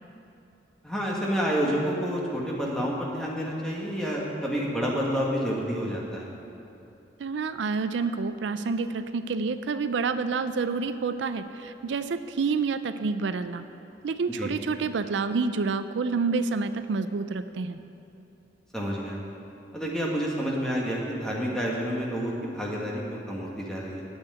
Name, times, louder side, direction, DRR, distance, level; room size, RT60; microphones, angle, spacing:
voice 1, 0.8-6.3 14.3-14.5 18.7-19.2 19.7-24.0, equal, 5° left, -4 dB, 1.7 m, -29 dB
voice 2, 7.2-13.6 14.0-17.8, right 4 dB, 85° right, 11 dB, 0.4 m, -28 dB
8.6 x 8.1 x 9.0 m, 2.8 s
head